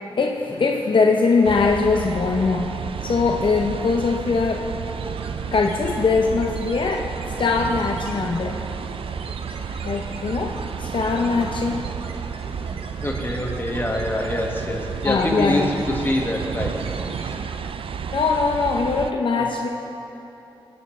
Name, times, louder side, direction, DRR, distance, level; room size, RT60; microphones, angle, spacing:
voice 1, 0.2-4.7 5.5-7.1 7.4-8.6 9.8-11.8 15.0-15.7 18.1-19.7, left 4 dB, 60° left, 2 dB, 0.7 m, -21 dB
sound 1, 1.4-19.1, right 7 dB, 70° right, 0.4 m, -32 dB
sound 2, 4.7-17.9, right 3 dB, 85° right, 1.0 m, -40 dB
voice 2, 13.0-16.9 19.4-19.5, left 1 dB, 20° left, 0 dB, 1.8 m, -25 dB
20.0 x 10.0 x 3.3 m, 3.0 s
wide cardioid pair, 80°, 10 cm